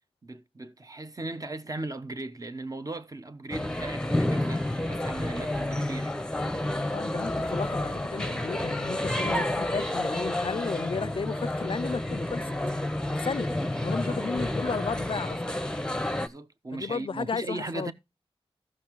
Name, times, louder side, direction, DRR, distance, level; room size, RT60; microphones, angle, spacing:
voice 1, 0.2-6.2 13.9-14.2 16.2-17.9, right 2 dB, 35° right, 1.0 m, -38 dB
sound 1, 3.5-16.3, left 1 dB, 5° left, 0.9 m, -30 dB
voice 2, 6.9-12.5 13.2-13.5 13.8-15.4 16.7-17.9, left 5 dB, 60° left, 0.4 m, -34 dB
15.5 x 6.1 x 3.0 m
wide cardioid pair, 80°, 10 cm